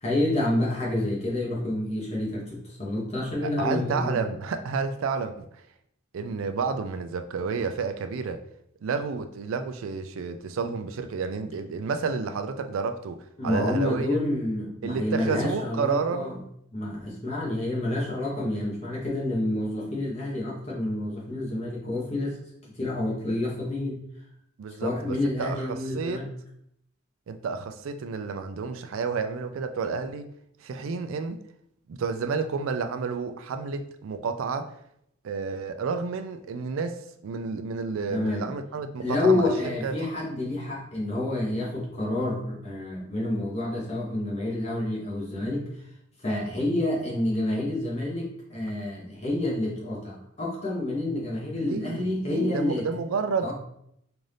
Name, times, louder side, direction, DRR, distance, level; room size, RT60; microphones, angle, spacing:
voice 1, 0.0-4.2 13.4-16.4 16.7-22.4 22.7-24.0 24.8-26.3 38.1-38.5 39.0-45.6 46.2-52.8 53.4-53.5, left 1 dB, 30° left, -4 dB, 1.1 m, -28 dB
voice 2, 3.4-5.5 6.1-8.4 8.8-13.2 13.4-14.1 14.8-16.3 17.9-18.0 24.6-26.2 27.3-30.3 30.6-31.4 31.9-34.7 35.2-40.1 51.6-53.5, right 5 dB, 80° right, 9 dB, 0.4 m, -30 dB
3.8 x 2.6 x 3.3 m, 0.73 s
head